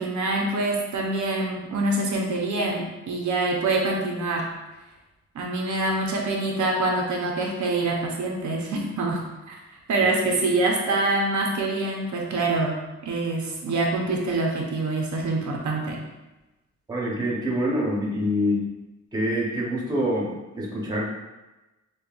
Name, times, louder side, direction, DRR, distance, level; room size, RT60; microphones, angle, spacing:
voice 1, 0.0-4.5 5.3-9.6 9.9-12.7 13.0-16.0, right 2 dB, 70° right, -1 dB, 0.6 m, -25 dB
voice 2, 16.9-18.6 19.1-21.1, equal, 15° right, -4 dB, 0.7 m, -26 dB
5.2 x 2.2 x 2.3 m, 1.1 s
wide cardioid pair, 175°, 30 cm